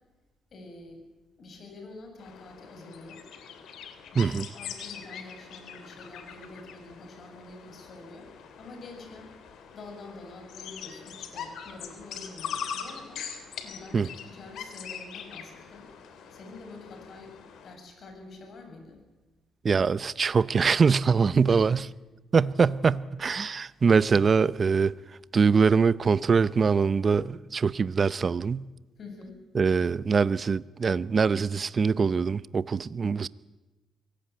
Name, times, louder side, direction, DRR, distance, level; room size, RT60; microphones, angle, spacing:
voice 1, 0.5-1.0 1.4-3.3 4.1-9.3 9.7-13.2 13.6-15.9 16.3-19.0 21.4-21.8 29.0-29.4, left 3 dB, 55° left, 7.5 m, -46 dB
sound 1, 2.2-17.8, left 7 dB, 75° left, 3.1 m, -42 dB
voice 2, 4.2-4.5 13.9-14.1 19.6-21.8 22.3-24.9 25.3-28.6 29.5-33.3, right 5 dB, 40° right, 0.7 m, -23 dB
24.5 x 17.0 x 9.3 m
cardioid pair, 90°, 0 cm